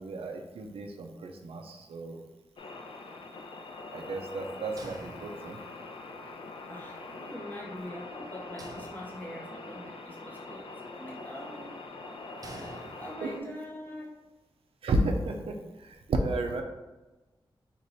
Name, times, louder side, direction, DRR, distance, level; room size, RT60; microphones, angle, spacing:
voice 1, 0.0-2.2 3.9-5.6 13.2-13.6 14.8-16.6, right 2 dB, 85° right, 3 dB, 0.6 m, -32 dB
sound 1, 2.6-13.4, left 3 dB, 65° left, 0.5 m, -43 dB
sound 2, 4.8-5.9 8.6-9.6 12.4-13.5, right 2 dB, 40° right, 0.6 m, -48 dB
voice 2, 6.7-11.7 12.4-14.2, left 1 dB, 20° left, -4 dB, 1.3 m, -44 dB
4.8 x 2.6 x 4.0 m, 1.1 s
wide cardioid pair, 115°, 10 cm